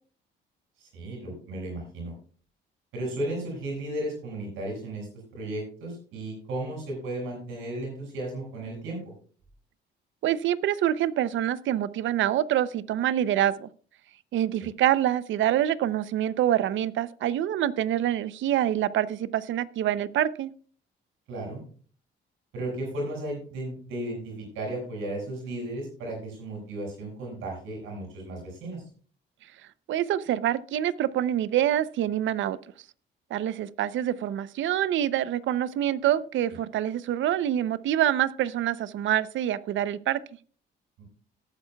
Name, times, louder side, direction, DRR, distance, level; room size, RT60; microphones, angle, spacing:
voice 1, 0.8-2.1 2.9-5.1 5.3-9.0 21.3-21.6 22.5-28.8 41.0-41.1, right 1 dB, 90° right, -1 dB, 6.6 m, -34 dB
voice 2, 10.2-13.7 14.3-20.5 29.9-32.6 33.3-40.2, right 11 dB, 75° right, 17 dB, 0.6 m, -26 dB
18.0 x 9.2 x 2.3 m, 0.42 s
cardioid pair, 75°, 20 cm